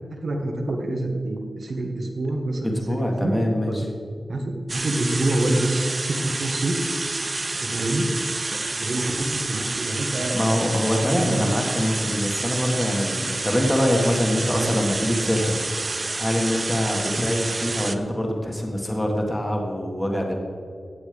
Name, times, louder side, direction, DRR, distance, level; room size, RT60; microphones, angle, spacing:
voice 1, 0.1-3.3 3.7-3.8 4.3-6.8 7.6-8.1 8.8-10.4 11.1-11.4 14.4-14.8, right 2 dB, 65° right, 1 dB, 1.6 m, -26 dB
voice 2, 2.7-3.8 10.3-20.3, equal, 10° left, 1 dB, 1.6 m, -24 dB
sound 1, 4.7-18.0, right 3 dB, 35° right, 0.7 m, -29 dB
15.5 x 8.4 x 5.2 m, 2.3 s
wide cardioid pair, 110°, 0 cm